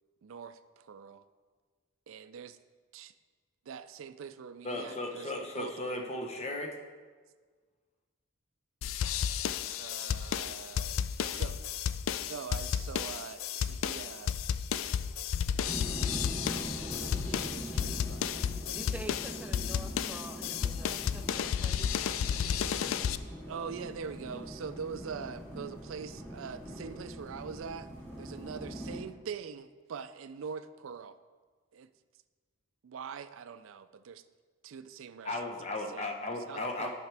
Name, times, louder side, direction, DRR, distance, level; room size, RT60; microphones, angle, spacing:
voice 1, 0.2-1.2 2.1-2.6 2.9-3.1 3.7-6.1 9.7-11.7 12.2-14.4 16.5-18.5 23.5-27.9 28.2-31.2 31.7-31.9 32.8-34.2 34.6-35.6 35.9-36.9, right 6 dB, 80° right, 13 dB, 0.4 m, -43 dB
voice 2, 4.6-6.7 35.2-36.9, left 2 dB, 30° left, 2 dB, 0.9 m, -36 dB
sound 1, 8.8-23.2, left 8 dB, 80° left, 0.3 m, -32 dB
sound 2, 15.6-29.0, equal, 10° left, 2.2 m, -42 dB
voice 3, 18.7-22.1, right 1 dB, 5° right, 5 dB, 0.4 m, -46 dB
10.5 x 6.0 x 3.4 m, 1.5 s
head